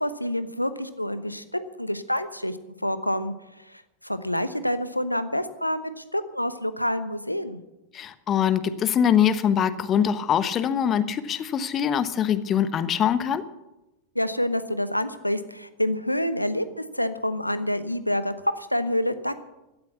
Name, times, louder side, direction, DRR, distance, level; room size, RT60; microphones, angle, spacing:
voice 1, 0.0-7.6 14.1-19.4, left 1 dB, 90° left, 12 dB, 1.0 m, -28 dB
voice 2, 7.9-13.4, left 8 dB, 30° left, 13 dB, 1.1 m, -23 dB
16.5 x 13.0 x 6.0 m, 0.95 s
figure-of-eight pair, 90°, 0 cm